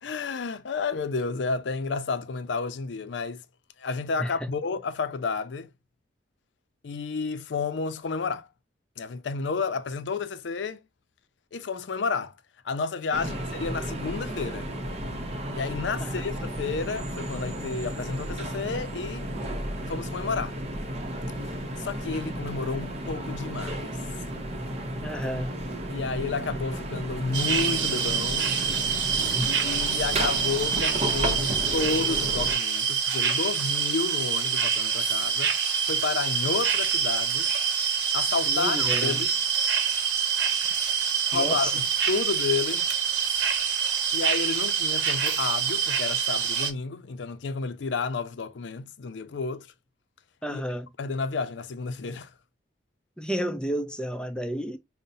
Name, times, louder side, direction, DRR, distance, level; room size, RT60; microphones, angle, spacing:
voice 1, 0.0-3.4 3.8-5.7 6.8-8.5 9.0-10.8 11.5-12.4 12.6-14.7 15.5-19.3 19.9-20.6 21.8-24.0 25.9-28.5 29.4-37.5 38.1-39.4 41.3-42.9 44.1-49.7 50.5-50.6 51.0-52.3, left 4 dB, 75° left, 0.5 m, -31 dB
sound 1, 13.1-32.5, right 1 dB, 35° right, 0.7 m, -33 dB
voice 2, 25.0-25.6 29.2-29.5 38.5-39.2 40.2-40.3 40.6-40.8 41.3-41.7 50.4-50.9 53.2-54.8, equal, 5° left, 0.5 m, -32 dB
sound 2, 27.3-46.7, right 7 dB, 85° right, 0.8 m, -26 dB
5.3 x 2.1 x 2.6 m
head